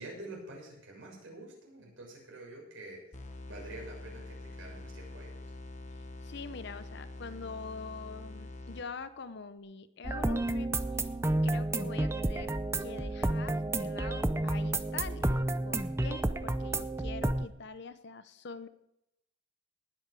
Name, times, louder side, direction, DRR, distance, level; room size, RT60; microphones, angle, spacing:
voice 1, 0.0-3.0 3.5-5.3, right 2 dB, 80° right, -2 dB, 6.7 m, -47 dB
sound 1, 3.1-9.2, left 2 dB, 35° left, 1.2 m, -45 dB
voice 2, 5.9-10.7 10.9-11.1 11.4-15.4 15.7-18.7, left 4 dB, 60° left, 12 dB, 0.8 m, -45 dB
sound 2, 10.0-17.5, right 2 dB, 15° right, 0.5 m, -31 dB
19.5 x 7.9 x 4.8 m, 0.83 s
head